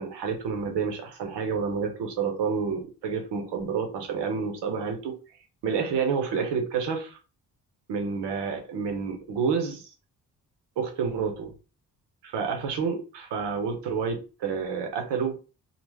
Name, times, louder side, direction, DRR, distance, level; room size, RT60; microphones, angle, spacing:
voice 1, 0.0-5.2 5.6-7.2 7.9-9.9 10.8-11.5 12.2-15.4, right 6 dB, 85° right, 0.8 m, -29 dB
2.4 x 2.0 x 3.2 m
cardioid pair, 65°, 40 cm